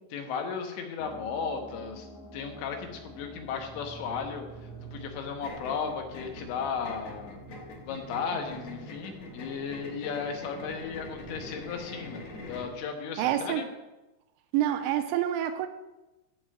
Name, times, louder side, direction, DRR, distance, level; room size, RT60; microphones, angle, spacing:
voice 1, 0.1-2.1 2.3-4.5 4.9-7.4 7.9-13.7, left 6 dB, 80° left, 4 dB, 3.6 m, -35 dB
sound 1, 1.0-9.1, equal, ahead, 0.4 m, -50 dB
sound 2, 2.8-12.8, right 2 dB, 45° left, 0.7 m, -49 dB
sound 3, 5.4-12.8, left 2 dB, 65° left, 1.6 m, -44 dB
voice 2, 13.2-13.6 14.5-15.7, right 11 dB, 90° right, 9 dB, 2.9 m, -27 dB
12.0 x 4.9 x 7.7 m, 1.0 s
omnidirectional pair, 5.1 m